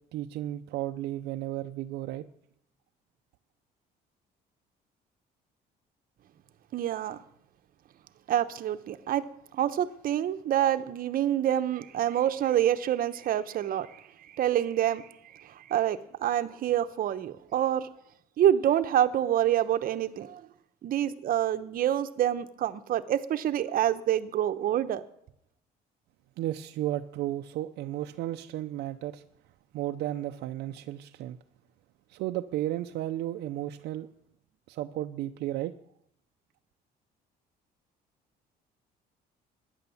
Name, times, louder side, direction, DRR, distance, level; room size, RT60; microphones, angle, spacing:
voice 1, 0.1-2.3 26.4-29.2 29.7-31.4 32.1-34.1 34.7-35.7, right 14 dB, 80° right, 0.7 m, -33 dB
voice 2, 6.7-7.2 8.3-9.3 9.5-14.0 14.3-17.9 18.4-20.4 20.8-25.0, right 11 dB, 55° right, 1.0 m, -27 dB
14.0 x 10.0 x 7.1 m
cardioid pair, 110°, 17 cm